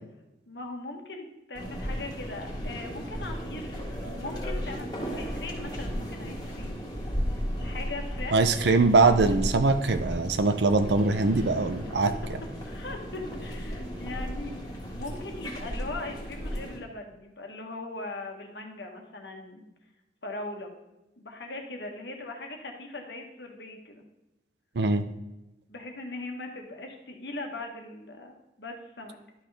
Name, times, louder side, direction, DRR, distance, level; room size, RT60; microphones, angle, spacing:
voice 1, 0.5-6.8 7.6-8.7 12.6-19.6 20.2-20.7 21.2-24.0 25.7-29.2, left 2 dB, 70° left, 3 dB, 1.4 m, -40 dB
sound 1, 1.5-16.8, equal, 20° left, 1.8 m, -35 dB
voice 2, 8.3-12.1 24.8-25.0, right 3 dB, 70° right, 10 dB, 0.6 m, -22 dB
11.5 x 5.7 x 3.4 m, 0.95 s
head